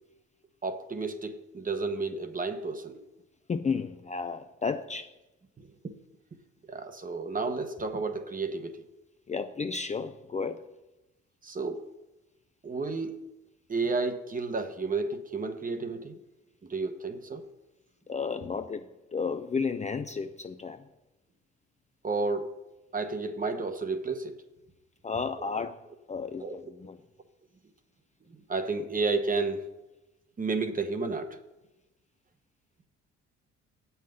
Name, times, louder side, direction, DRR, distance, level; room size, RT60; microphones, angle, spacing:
voice 1, 0.6-3.0 5.6-5.7 6.7-8.9 11.4-11.9 12.6-13.1 13.7-16.2 16.6-17.5 22.0-22.5 22.9-24.4 26.4-26.5 28.5-29.7 30.4-31.4, right 3 dB, 30° right, 1.0 m, -31 dB
voice 2, 3.5-5.1 9.3-10.6 18.1-20.9 25.0-27.0, left 5 dB, 25° left, 0.4 m, -33 dB
8.2 x 5.7 x 7.7 m
cardioid pair, 90°, 30 cm